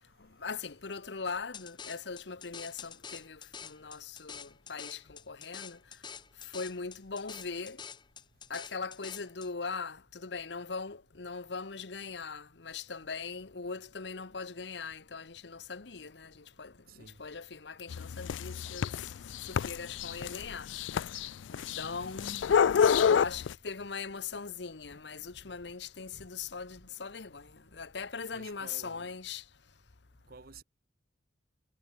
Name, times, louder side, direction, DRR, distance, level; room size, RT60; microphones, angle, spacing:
voice 1, 0.2-5.8 6.4-7.8 8.5-19.1 19.4-21.1 21.5-22.6 23.0-29.5, left 5 dB, 70° left, 1.0 m, -40 dB
sound 1, 1.5-9.5, left 7 dB, 25° left, 0.6 m, -47 dB
voice 2, 16.9-17.2 21.5-21.8 28.3-29.1 30.3-30.6, right 4 dB, 50° right, 1.0 m, -52 dB
sound 2, 17.9-23.5, left 7 dB, 90° left, 0.4 m, -28 dB
head